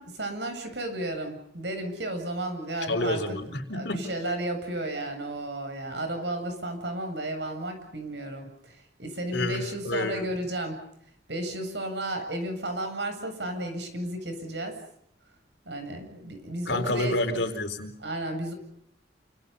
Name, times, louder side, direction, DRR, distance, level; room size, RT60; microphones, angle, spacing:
voice 1, 0.0-3.2 3.7-10.8 11.3-14.8 15.6-17.4 18.0-18.5, right 1 dB, 70° right, 6 dB, 7.9 m, -33 dB
voice 2, 2.9-4.1 9.3-10.3 16.7-17.9, left 2 dB, 70° left, 6 dB, 4.3 m, -29 dB
30.0 x 27.0 x 5.7 m, 0.71 s
head